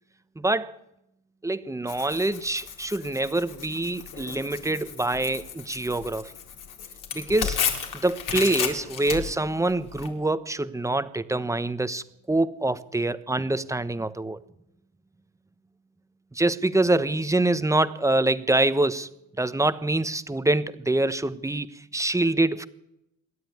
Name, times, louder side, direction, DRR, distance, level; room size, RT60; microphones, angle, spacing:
voice 1, 0.4-0.8 1.4-6.3 7.1-7.7 8.0-14.4 16.3-22.7, right 2 dB, 10° right, 13 dB, 1.1 m, -25 dB
Tearing, 1.9-10.1, left 8 dB, 65° left, 4.3 m, -33 dB
27.0 x 12.5 x 9.7 m, 0.84 s
cardioid pair, 120°, 35 cm